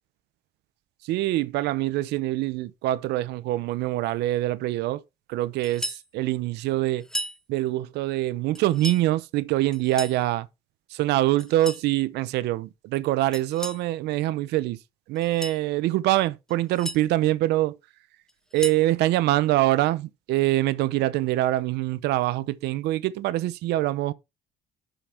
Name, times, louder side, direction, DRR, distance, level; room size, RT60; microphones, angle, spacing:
voice 1, 1.0-5.0 5.3-7.0 7.5-10.5 10.9-14.8 15.1-17.8 18.5-24.1, right 16 dB, 85° right, 0.6 m, -24 dB
sound 1, 5.6-6.1 7.0-7.4 8.5-9.0 9.7-10.2 11.4-11.9 13.3-13.8 15.2-15.6 16.5-17.0 18.3-18.9, equal, 5° left, 1.0 m, -35 dB
11.5 x 5.1 x 4.3 m
cardioid pair, 110°, 17 cm